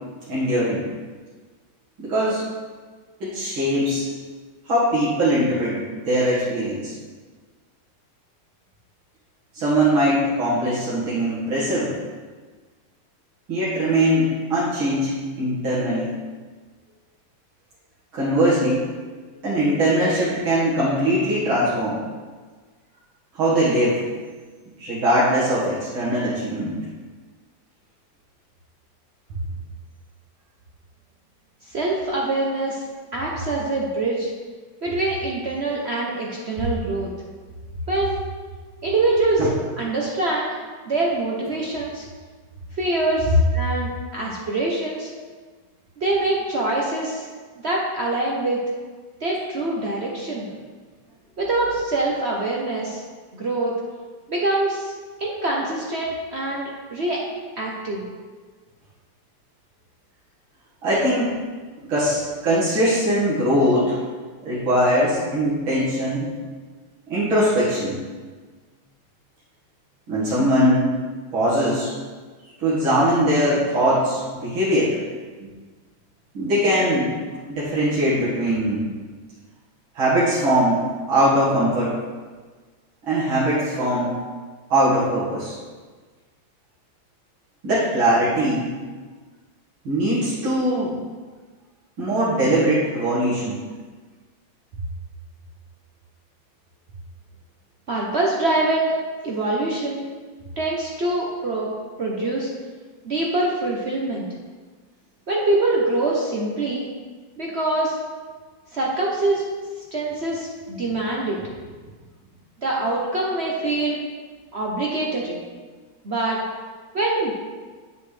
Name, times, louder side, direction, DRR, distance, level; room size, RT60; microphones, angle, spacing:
voice 1, 0.3-0.9 2.0-2.5 3.2-4.1 4.6-6.9 9.5-12.0 13.5-16.1 18.1-18.9 19.4-22.0 23.3-24.0 24.8-26.8 39.4-39.5 60.8-61.3 61.8-64.0 64.4-66.3 67.1-68.0 70.1-70.9 71.3-71.9 72.6-75.0 75.4-75.5 76.3-77.1 77.5-78.8 79.9-81.9 83.1-84.2 84.7-85.6 87.6-88.7 89.8-91.0 92.0-93.5, right 1 dB, 85° right, -11 dB, 2.7 m, -21 dB
voice 2, 31.7-32.8 33.1-34.3 34.8-37.1 37.9-38.2 38.8-39.5 39.8-40.5 40.8-42.0 42.8-45.1 46.0-47.3 47.6-48.6 49.2-50.5 51.4-53.0 53.3-53.7 54.3-54.9 55.2-57.2 57.6-58.0 97.9-98.9 99.2-100.1 100.6-101.7 102.0-102.5 103.0-104.3 105.3-106.9 107.4-108.0 108.7-109.4 109.9-111.4 112.6-114.0 114.5-115.4 116.0-116.4 116.9-117.3, right 2 dB, 55° right, -3 dB, 0.7 m, -24 dB
8.0 x 6.7 x 3.3 m, 1.4 s
omnidirectional pair, 2.2 m